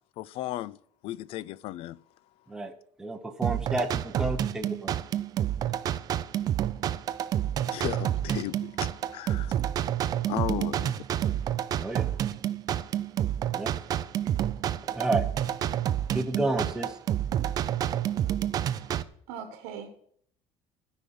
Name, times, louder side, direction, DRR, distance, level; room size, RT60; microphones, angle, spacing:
voice 1, 0.2-0.8 1.0-2.0 7.7-9.5 10.3-10.9, left 15 dB, 55° left, 0.4 m, -35 dB
voice 2, 2.5-5.0 11.8-12.1 13.5-13.7 14.9-15.2 16.1-16.9, right 2 dB, 5° right, 0.8 m, -31 dB
sound 1, 3.4-19.0, right 11 dB, 35° right, 0.4 m, -29 dB
voice 3, 18.5-18.9 19.3-19.9, right 8 dB, 85° right, 1.4 m, -41 dB
13.5 x 5.5 x 7.6 m
cardioid pair, 175°, 12 cm